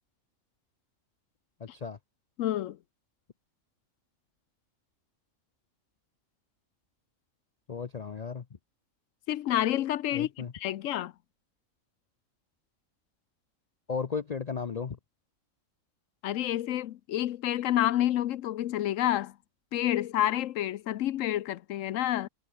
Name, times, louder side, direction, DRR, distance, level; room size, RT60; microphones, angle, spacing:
voice 1, 1.6-2.0 7.7-8.4 10.1-10.5 13.9-15.0, left 5 dB, 40° left, 0.6 m, -35 dB
voice 2, 2.4-2.8 9.3-10.3 10.5-11.1 16.2-19.3 19.7-22.3, left 13 dB, 75° left, 1.0 m, -29 dB
omnidirectional pair, 1.4 m